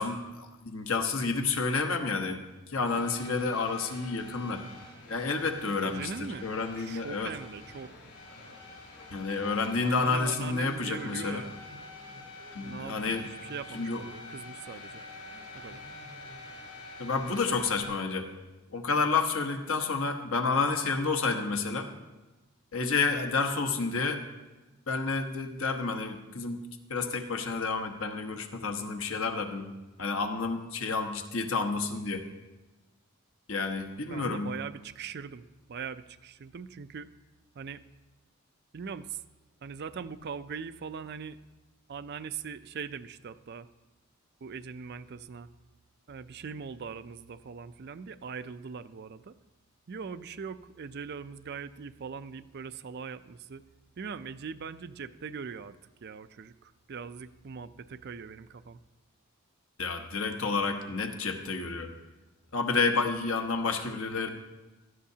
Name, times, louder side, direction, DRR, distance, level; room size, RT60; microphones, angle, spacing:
voice 1, 0.0-2.4 2.7-4.6 5.1-6.1 6.4-7.3 9.1-11.4 12.5-13.3 13.7-14.0 17.0-18.3 18.7-21.9 22.7-24.2 24.9-26.6 26.9-29.7 30.0-32.2 33.5-34.5 59.8-61.9 62.5-64.3, left 4 dB, 65° left, 5 dB, 1.1 m, -30 dB
sound 1, 2.8-17.8, left 3 dB, 80° left, 4.6 m, -47 dB
voice 2, 5.8-7.9 9.8-11.5 12.6-13.2 13.5-15.0 15.5-15.8 34.1-37.1 37.6-37.8 38.7-39.2 39.6-41.4 41.9-43.7 44.4-45.5 46.1-49.4 49.9-53.6 54.0-58.8, right 6 dB, 50° right, 12 dB, 0.4 m, -41 dB
17.5 x 13.0 x 2.8 m, 1.1 s
head